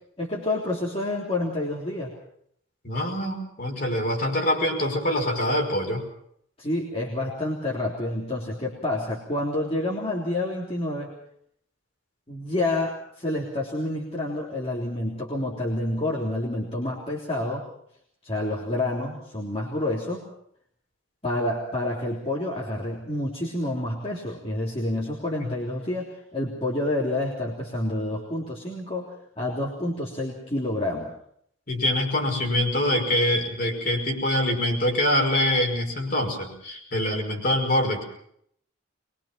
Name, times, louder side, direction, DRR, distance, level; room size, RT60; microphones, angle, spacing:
voice 1, 0.2-2.1 6.6-11.1 12.3-17.6 18.2-20.3 21.2-29.1 29.4-31.1, left 1 dB, 30° left, -5 dB, 3.5 m, -28 dB
voice 2, 2.8-6.0 25.4-25.5 31.7-38.0, left 1 dB, 45° left, 1 dB, 5.5 m, -24 dB
23.5 x 22.5 x 5.8 m, 0.69 s
head